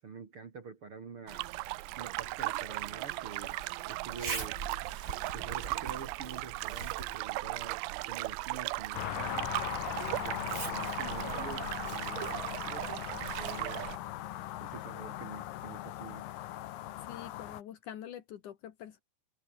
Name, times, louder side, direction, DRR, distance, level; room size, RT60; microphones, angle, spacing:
voice 1, 0.0-1.4 2.0-4.6 5.3-7.8 8.1-9.5 10.0-13.9 14.6-16.2, right 5 dB, 45° right, 1.8 m, -47 dB
Zipper (clothing), 1.3-14.9, right 4 dB, 25° right, 2.3 m, -47 dB
sound 1, 1.3-14.0, right 22 dB, 85° right, 2.5 m, -37 dB
sound 2, 8.9-17.6, left 14 dB, 80° left, 2.0 m, -39 dB
voice 2, 17.0-19.0, left 10 dB, 60° left, 2.3 m, -45 dB
omnidirectional pair, 5.6 m